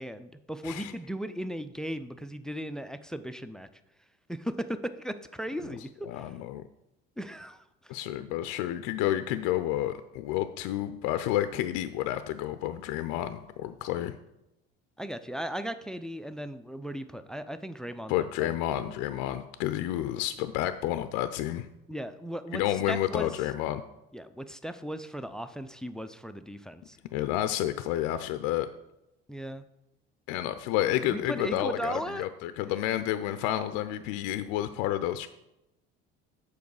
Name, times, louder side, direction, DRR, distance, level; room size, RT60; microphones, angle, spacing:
voice 1, 0.0-3.7 4.3-5.9 7.2-7.9 15.0-18.5 21.9-23.3 24.1-27.0 29.3-29.6 31.0-32.3 32.6-32.8, equal, ahead, 12 dB, 0.4 m, -37 dB
voice 2, 6.1-6.7 7.9-14.1 18.1-21.7 22.5-23.8 27.1-28.7 30.3-35.3, left 13 dB, 65° left, 11 dB, 0.5 m, -30 dB
7.0 x 4.6 x 4.8 m, 0.90 s
hypercardioid pair, 70°, 31 cm